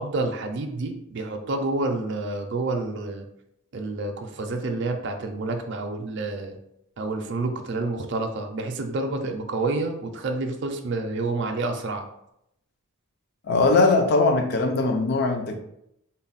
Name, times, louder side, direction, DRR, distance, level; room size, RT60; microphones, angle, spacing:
voice 1, 0.0-3.2 3.7-6.6 7.0-12.1, right 2 dB, 50° right, 4 dB, 0.4 m, -29 dB
voice 2, 13.4-15.6, left 3 dB, 45° left, 5 dB, 0.5 m, -20 dB
3.8 x 2.1 x 4.0 m, 0.80 s
head